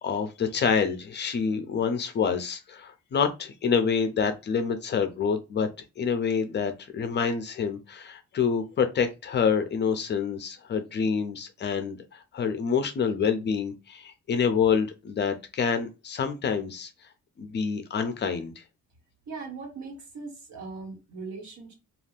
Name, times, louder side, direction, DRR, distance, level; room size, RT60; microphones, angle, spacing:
voice 1, 0.0-5.7 6.0-16.9 17.4-18.6, left 6 dB, 40° left, 0.4 m, -27 dB
voice 2, 19.3-21.7, right 4 dB, 70° right, 1.3 m, -39 dB
2.5 x 2.4 x 3.3 m
cardioid pair, 170°, 29 cm